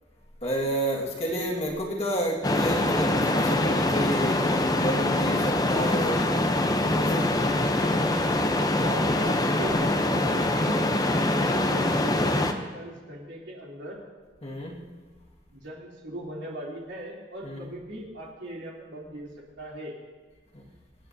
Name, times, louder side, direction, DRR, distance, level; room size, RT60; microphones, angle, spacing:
voice 1, 0.4-6.2 7.0-7.4 14.4-14.8 17.4-17.6 20.5-20.6, equal, 35° left, -2 dB, 1.8 m, -30 dB
sound 1, 2.4-12.5, left 1 dB, 20° left, 0.7 m, -24 dB
voice 2, 8.4-10.8 11.5-14.0 15.5-19.3 19.6-19.9, right 1 dB, 75° right, -4 dB, 3.2 m, -39 dB
26.0 x 9.3 x 2.7 m, 1.3 s
head